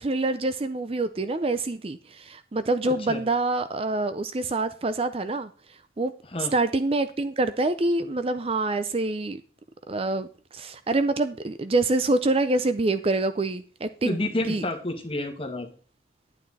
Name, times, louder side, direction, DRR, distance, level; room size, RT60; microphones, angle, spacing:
voice 1, 0.0-5.5 6.0-6.1 6.5-9.4 9.9-14.7, right 2 dB, 30° right, 0.5 m, -26 dB
voice 2, 14.0-15.7, left 1 dB, 30° left, 1.7 m, -29 dB
10.5 x 9.2 x 4.1 m
head